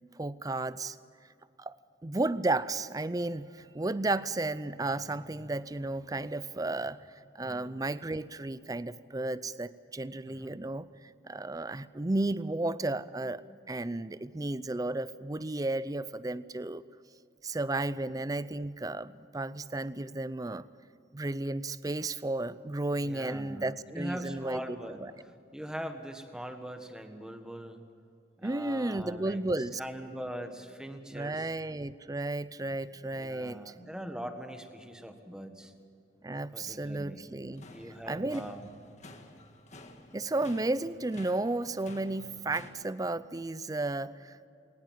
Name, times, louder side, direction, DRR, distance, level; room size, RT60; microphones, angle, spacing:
voice 1, 0.2-1.0 1.6-1.8 2.0-7.0 7.3-13.4 13.7-16.8 17.4-20.7 21.1-24.6 25.0-25.1 28.4-29.8 31.1-33.7 36.2-37.6 38.1-38.4 40.1-44.5, right 2 dB, 20° right, 16 dB, 0.5 m, -33 dB
voice 2, 7.4-7.7 10.3-10.5 23.0-27.9 28.4-31.5 33.1-35.7 36.5-37.3 37.7-38.7, equal, 5° right, 6 dB, 1.6 m, -42 dB
sound 1, 37.5-42.7, left 2 dB, 40° left, 1.8 m, -51 dB
21.5 x 19.0 x 7.5 m, 2.6 s
head